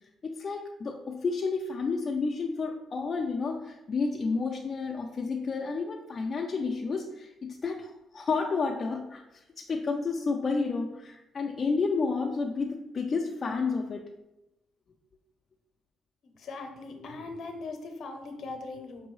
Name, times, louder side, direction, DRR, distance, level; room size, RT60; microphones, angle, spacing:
voice 1, 0.2-9.2 9.6-14.1, left 4 dB, 40° left, 1 dB, 0.4 m, -31 dB
voice 2, 16.4-19.1, left 3 dB, 65° left, 5 dB, 0.7 m, -40 dB
5.3 x 2.7 x 3.1 m, 0.94 s
cardioid pair, 90°, 0 cm